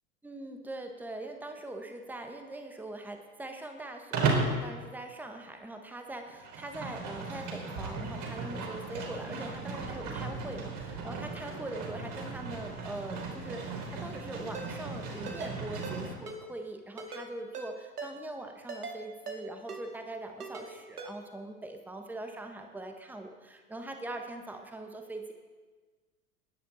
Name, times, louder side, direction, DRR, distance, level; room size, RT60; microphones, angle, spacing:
voice 1, 0.2-25.3, right 2 dB, 5° right, 4 dB, 1.4 m, -42 dB
Livestock farm animals working animals, 4.1-4.6 6.3-16.1, right 4 dB, 40° right, 4.0 m, -35 dB
Ringtone, 14.5-14.7 15.3-15.5 15.8-16.0 16.3-16.4 17.0-17.2 17.5-17.7 18.0-18.1 18.7-19.0 19.3-19.4 19.7-19.8 20.4-20.7 21.0-21.1, right 4 dB, 75° right, 2.2 m, -40 dB
19.5 x 10.0 x 4.2 m, 1.4 s
figure-of-eight pair, 80°, 46 cm